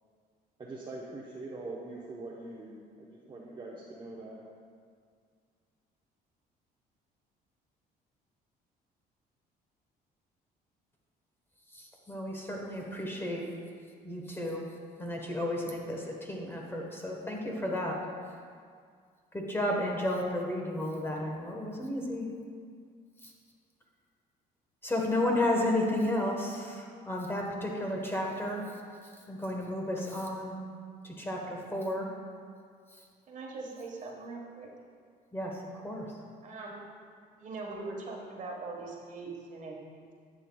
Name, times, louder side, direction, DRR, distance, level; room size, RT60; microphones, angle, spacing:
voice 1, 0.6-4.4, right 2 dB, 30° right, -5 dB, 0.9 m, -43 dB
voice 2, 11.7-13.5 14.0-14.6 15.0-18.1 19.3-22.3 23.2-23.3 24.8-28.8 29.3-30.6 31.0-32.1 32.9-33.0 35.3-36.2, left 1 dB, 15° left, 0 dB, 1.2 m, -32 dB
voice 3, 33.3-34.7 36.4-36.8 37.4-40.1, right 3 dB, 45° right, 0 dB, 1.3 m, -41 dB
11.0 x 7.8 x 2.3 m, 2.1 s
cardioid pair, 110°, 17 cm